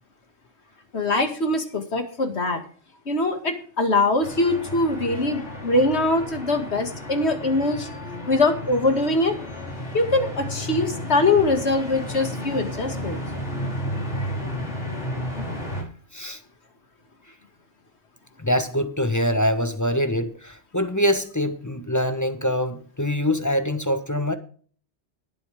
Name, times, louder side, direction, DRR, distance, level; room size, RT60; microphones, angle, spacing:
voice 1, 0.9-2.6 3.1-7.9 8.3-9.3 9.9-13.2, left 2 dB, 70° left, 2.4 m, -22 dB
sound 1, 4.2-15.8, equal, 85° left, 5.0 m, -32 dB
voice 2, 18.4-24.3, equal, 15° left, 1.1 m, -24 dB
19.0 x 8.3 x 3.6 m
omnidirectional pair, 1.2 m